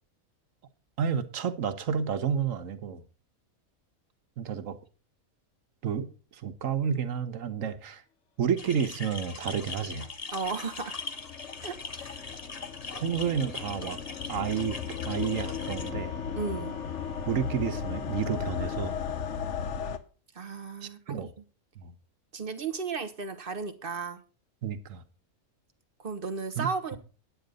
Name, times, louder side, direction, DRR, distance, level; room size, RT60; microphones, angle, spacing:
voice 1, 1.0-3.0 4.4-4.8 5.8-8.0 8.4-10.1 12.9-14.0 14.3-14.8 15.0-16.2 17.3-19.0 20.8-21.3 21.8-21.9 24.6-25.0 26.6-27.0, right 7 dB, 70° right, 1.4 m, -31 dB
sound 1, 8.6-15.9, left 4 dB, 30° left, 1.0 m, -41 dB
sound 2, 10.3-20.0, left 7 dB, 60° left, 1.2 m, -36 dB
voice 2, 10.3-11.0 11.6-12.3 16.3-16.7 20.3-21.2 22.3-24.2 26.0-27.0, right 4 dB, 40° right, 1.4 m, -34 dB
9.3 x 9.2 x 5.2 m
omnidirectional pair, 1.5 m